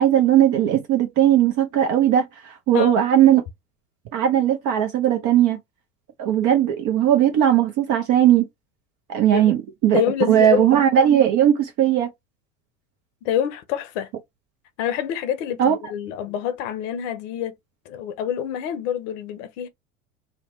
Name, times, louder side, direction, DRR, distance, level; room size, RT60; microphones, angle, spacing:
voice 1, 0.0-3.4 4.1-5.6 6.2-8.5 9.1-10.0 10.3-12.1 15.6-15.8, right 10 dB, 45° right, 0.6 m, -18 dB
voice 2, 9.9-10.7 13.2-14.1 14.8-17.5 17.9-19.7, left 10 dB, 60° left, 0.7 m, -26 dB
2.8 x 2.1 x 2.9 m
hypercardioid pair, 75°, 41 cm